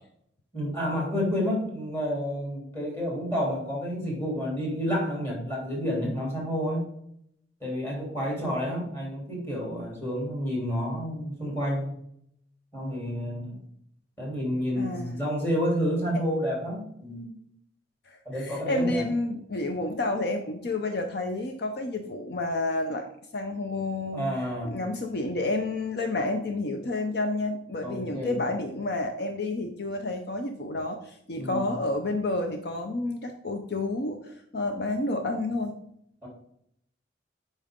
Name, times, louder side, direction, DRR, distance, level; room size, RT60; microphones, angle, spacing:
voice 1, 0.5-6.9 7.6-12.0 12.7-13.6 14.2-17.3 18.2-19.1 24.1-24.8 27.8-28.4 31.4-31.7 36.2-36.3, equal, 10° left, -3 dB, 3.1 m, -30 dB
voice 2, 14.8-15.2 18.1-24.2 24.6-35.8, left 2 dB, 55° left, 5 dB, 0.6 m, -30 dB
8.5 x 5.4 x 3.6 m, 0.72 s
head